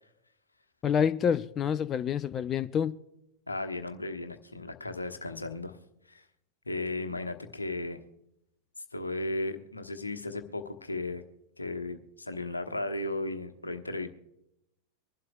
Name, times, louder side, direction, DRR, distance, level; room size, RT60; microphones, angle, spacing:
voice 1, 0.8-2.9, left 8 dB, 25° left, 14 dB, 0.4 m, -27 dB
voice 2, 3.5-5.8 6.1-6.2 6.6-8.0 8.9-11.2 11.6-14.1, left 2 dB, 80° left, 6 dB, 1.1 m, -35 dB
24.5 x 12.0 x 2.2 m, 0.83 s
figure-of-eight pair, 90°, 0 cm